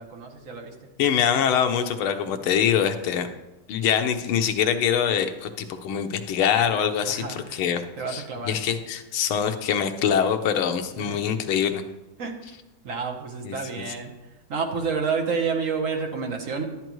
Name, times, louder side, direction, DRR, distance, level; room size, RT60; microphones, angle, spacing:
voice 1, 0.0-0.9 2.2-2.5 7.1-7.6 8.0-8.6 10.9-11.2 12.2-12.6 12.8-14.1 14.5-16.6, right 5 dB, 50° right, 2 dB, 1.2 m, -30 dB
voice 2, 1.0-3.3 3.7-7.8 8.1-11.8 13.4-13.8, left 8 dB, 85° left, 7 dB, 1.6 m, -24 dB
11.0 x 10.5 x 3.1 m, 1.1 s
omnidirectional pair, 2.3 m